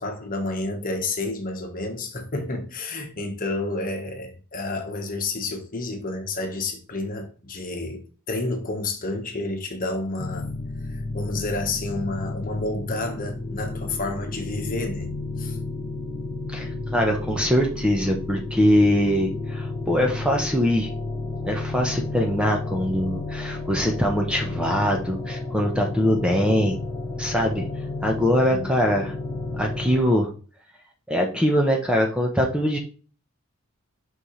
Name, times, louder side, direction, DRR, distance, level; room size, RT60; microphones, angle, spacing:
voice 1, 0.0-10.5 10.9-15.1 15.4-15.6 28.5-28.7, left 2 dB, 40° left, 1.4 m, -30 dB
sound 1, 10.2-30.0, left 2 dB, 25° left, 0.5 m, -32 dB
voice 2, 16.5-20.9 21.4-26.8 27.2-27.6 28.0-29.1 29.5-30.3 31.1-32.8, equal, 5° right, 1.0 m, -22 dB
6.3 x 5.7 x 3.3 m
head